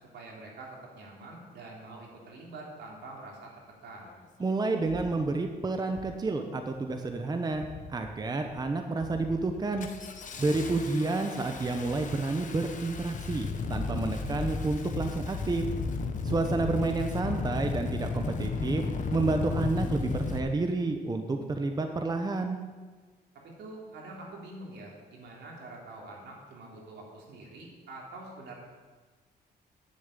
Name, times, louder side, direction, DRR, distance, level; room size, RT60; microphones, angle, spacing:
voice 1, 0.1-3.5 3.8-4.1 10.5-10.7 23.4-28.5, right 2 dB, 80° right, -2 dB, 3.5 m, -45 dB
Engine starting, 4.1-4.2 4.9-5.2 5.9-6.2 6.6-7.1 7.5-8.1 8.5-8.7 9.0-20.4, left 4 dB, 45° left, 1.1 m, -34 dB
voice 2, 4.4-7.6 7.9-9.9 10.4-15.6 16.2-18.8 19.1-22.6, right 3 dB, 20° right, 5 dB, 0.9 m, -30 dB
10.5 x 7.4 x 9.0 m, 1.4 s
cardioid pair, 130°, 18 cm